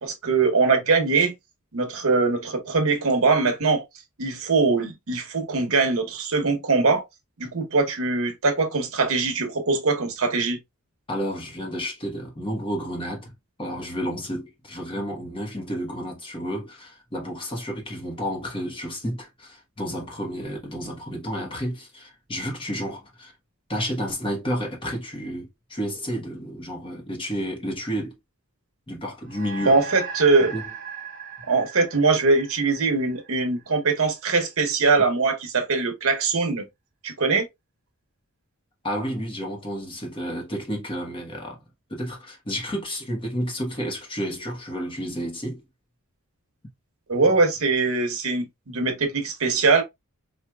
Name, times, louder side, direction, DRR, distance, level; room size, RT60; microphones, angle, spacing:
voice 1, 0.0-1.3 1.7-3.8 4.2-7.0 7.4-10.6 29.6-30.5 31.5-36.7 37.0-37.5 47.1-49.8, right 4 dB, 70° right, 0.9 m, -22 dB
voice 2, 11.1-13.3 13.6-23.3 23.7-28.2 28.9-29.8 30.5-30.6 38.8-41.6 41.9-45.6, equal, 25° left, 0.9 m, -31 dB
sound 1, 29.3-34.0, right 6 dB, 35° right, 1.1 m, -38 dB
4.3 x 2.4 x 2.2 m
head